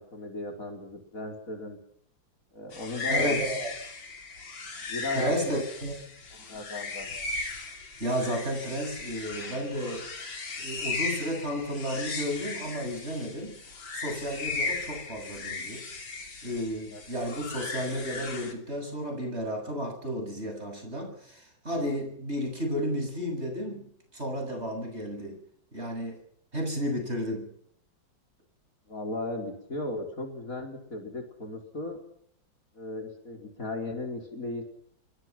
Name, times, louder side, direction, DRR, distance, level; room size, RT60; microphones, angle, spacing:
voice 1, 0.0-1.8 2.5-3.4 4.9-5.6 6.4-7.1 16.9-17.0 28.9-32.0 32.7-34.6, left 2 dB, 45° left, 3 dB, 5.2 m, -36 dB
sound 1, 2.7-18.5, left 3 dB, 75° left, 4.1 m, -36 dB
voice 2, 3.1-3.7 5.1-5.9 8.0-10.1 10.6-13.6 13.9-15.8 16.4-23.9 24.1-25.4 25.7-26.2 26.5-27.5, equal, 30° right, 4 dB, 8.2 m, -32 dB
27.5 x 23.0 x 6.1 m, 0.66 s
omnidirectional pair, 2.1 m